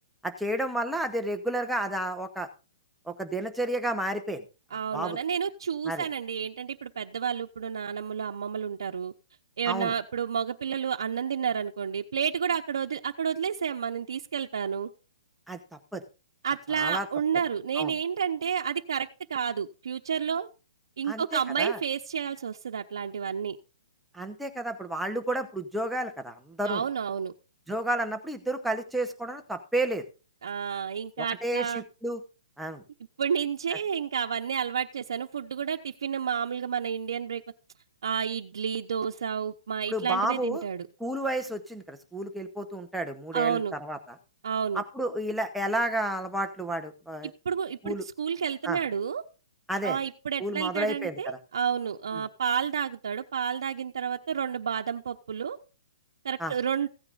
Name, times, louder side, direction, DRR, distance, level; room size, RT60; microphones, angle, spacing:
voice 1, 0.2-2.5 3.1-4.4 4.9-5.2 5.8-6.1 9.7-9.9 15.5-15.6 15.9-16.0 16.7-17.1 17.8-17.9 21.1-21.8 24.1-26.8 27.7-30.0 31.2-32.2 32.6-32.8 39.9-40.6 41.0-44.2 44.7-47.3 47.8-48.0 48.6-48.8 49.7-50.0 50.4-51.4 52.1-52.2 56.4-56.5, right 1 dB, ahead, 4 dB, 0.9 m, -31 dB
voice 2, 4.7-9.1 9.6-14.9 16.4-20.5 21.0-23.6 26.7-27.3 30.4-31.8 33.2-37.4 38.0-40.9 43.3-43.8 44.4-44.8 47.2-49.2 49.8-55.6 56.2-56.9, right 7 dB, 65° right, 2 dB, 0.9 m, -30 dB
16.0 x 9.7 x 2.5 m, 0.32 s
hypercardioid pair, 175°, 2 cm